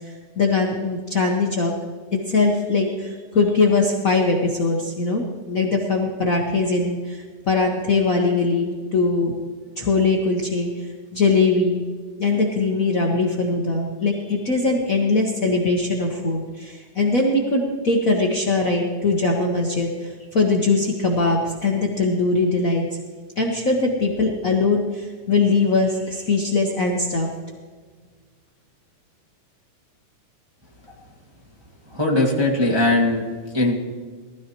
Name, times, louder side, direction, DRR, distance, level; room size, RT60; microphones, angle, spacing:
voice 1, 0.4-1.7 2.1-9.3 9.8-10.7 11.1-11.8 12.2-22.8 23.4-27.3, left 3 dB, 80° left, -1 dB, 0.7 m, -21 dB
voice 2, 31.9-33.2 33.5-33.8, left 2 dB, 10° right, -3 dB, 1.3 m, -19 dB
19.5 x 13.5 x 3.0 m, 1.5 s
omnidirectional pair, 3.5 m